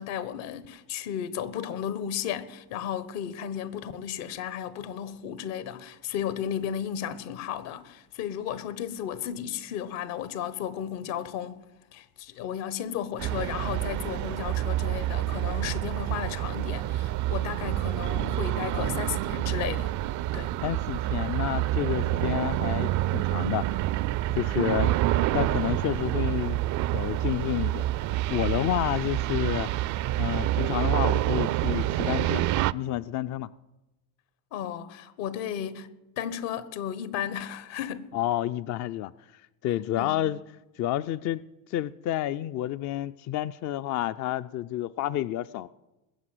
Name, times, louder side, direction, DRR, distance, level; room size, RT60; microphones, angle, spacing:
voice 1, 0.0-11.6 11.9-19.9 20.3-20.5 34.5-35.9 36.2-38.1 39.9-40.2, left 9 dB, 70° left, 1.3 m, -34 dB
sound 1, 13.2-32.7, right 15 dB, 40° right, 0.4 m, -27 dB
voice 2, 20.6-23.7 24.4-25.0 25.3-26.6 26.9-27.9 28.3-29.7 30.2-32.4 32.7-33.5 38.1-39.1 39.6-40.4 40.8-45.7, left 13 dB, 40° left, 0.4 m, -30 dB
20.5 x 7.4 x 7.8 m
supercardioid pair, 90°, 46 cm